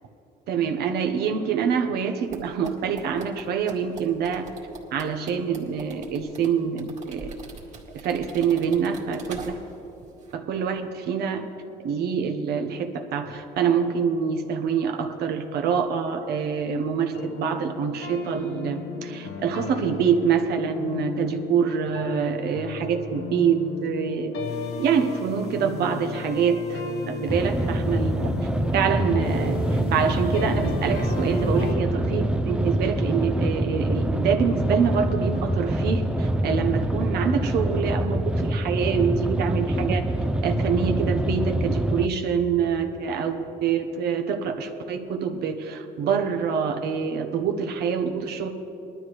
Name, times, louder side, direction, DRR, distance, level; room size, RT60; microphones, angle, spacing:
voice 1, 0.5-4.5 4.9-7.3 7.9-9.4 10.3-11.4 11.8-24.4 24.8-26.8 27.1-28.3 28.7-40.1 40.4-48.5, right 6 dB, 75° right, 5 dB, 1.0 m, -25 dB
sound 1, 2.3-9.9 10.1-10.3, right 4 dB, 45° right, 2.3 m, -43 dB
sound 2, 16.9-31.7, left 4 dB, 80° left, 1.0 m, -34 dB
sound 3, 27.3-42.1, right 1 dB, 5° right, 0.5 m, -25 dB
20.0 x 12.5 x 3.2 m, 3.0 s
cardioid pair, 110°, 17 cm